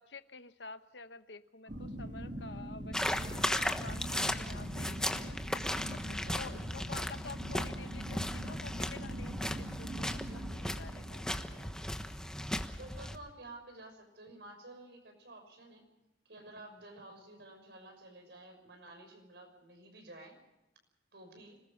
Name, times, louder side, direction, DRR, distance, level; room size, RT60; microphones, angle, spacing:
voice 1, 0.0-5.4 5.9-11.8, left 4 dB, 75° left, 11 dB, 1.1 m, -50 dB
sound 1, 1.7-12.4, equal, 45° right, 2.2 m, -43 dB
sound 2, 2.9-13.2, left 1 dB, 5° left, 1.2 m, -36 dB
voice 2, 6.2-6.6 12.8-15.8 16.2-20.4 21.1-21.6, right 2 dB, 70° right, 5 dB, 6.0 m, -52 dB
26.0 x 20.5 x 5.3 m, 0.94 s
head